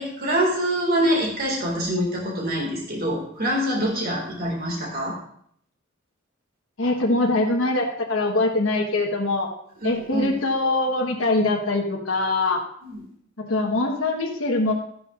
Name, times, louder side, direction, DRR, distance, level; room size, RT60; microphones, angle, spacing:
voice 1, 0.0-5.2 9.8-10.3 12.8-13.0, equal, 50° right, -1 dB, 2.2 m, -25 dB
voice 2, 6.8-9.5 9.8-12.6 13.4-14.7, left 2 dB, 85° left, 0 dB, 1.3 m, -23 dB
12.5 x 10.5 x 2.5 m, 0.66 s
head